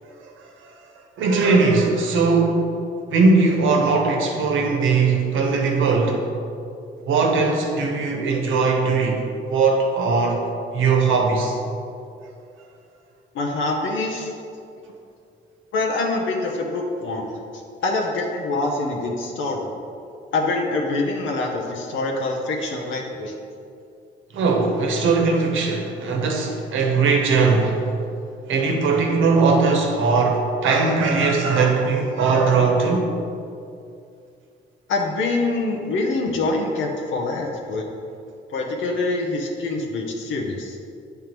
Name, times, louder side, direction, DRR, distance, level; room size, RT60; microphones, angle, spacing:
voice 1, 1.2-2.7 3.1-6.2 7.1-10.4 10.7-11.6 24.3-27.8 28.5-33.1, right 4 dB, 80° right, 1 dB, 1.1 m, -19 dB
voice 2, 13.3-14.3 15.7-17.3 17.8-19.7 20.3-23.3 34.9-37.9 38.5-40.8, left 2 dB, 75° left, 0 dB, 0.9 m, -25 dB
9.0 x 3.5 x 4.5 m, 2.6 s
cardioid pair, 90°, 20 cm